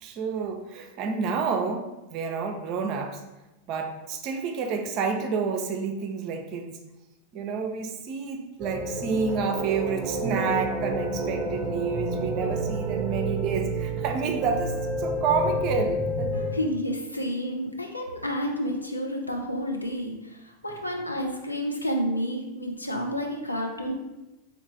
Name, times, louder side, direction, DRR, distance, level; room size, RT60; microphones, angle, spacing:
voice 1, 0.0-3.2 3.7-6.8 7.3-16.3, right 5 dB, 40° right, 5 dB, 0.5 m, -29 dB
sound 1, 8.6-16.5, right 1 dB, 20° right, 0.9 m, -29 dB
voice 2, 16.3-23.9, equal, 85° left, 1 dB, 0.6 m, -30 dB
3.2 x 3.0 x 3.8 m, 1.0 s
figure-of-eight pair, 90°, 0 cm